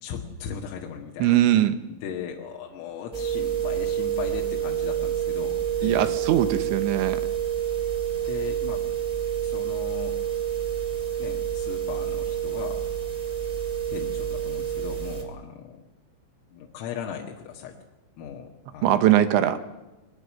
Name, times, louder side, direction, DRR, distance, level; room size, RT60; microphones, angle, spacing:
voice 1, 0.0-6.1 8.1-8.8 9.4-10.2 11.2-12.8 13.9-15.8 16.5-17.8 18.2-19.1, left 8 dB, 80° left, 0 dB, 4.4 m, -38 dB
voice 2, 1.2-1.8 5.8-7.2 18.8-19.6, right 12 dB, 75° right, 11 dB, 3.0 m, -21 dB
sound 1, 3.1-15.2, right 10 dB, 15° right, 1.5 m, -28 dB
22.0 x 20.0 x 7.6 m, 1.1 s
omnidirectional pair, 6.0 m